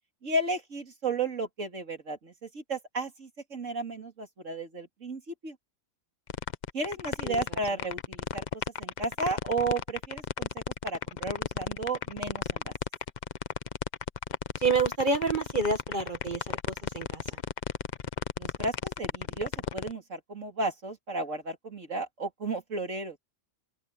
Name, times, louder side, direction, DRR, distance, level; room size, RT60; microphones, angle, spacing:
voice 1, 0.2-5.6 6.7-8.4 8.8-10.5 10.8-12.7 18.4-23.2, right 2 dB, 70° right, 3.2 m, -33 dB
sound 1, 6.3-19.9, left 7 dB, 45° left, 0.6 m, -33 dB
voice 2, 14.6-17.2, right 4 dB, 40° right, 1.8 m, -28 dB
open air
omnidirectional pair, 1.4 m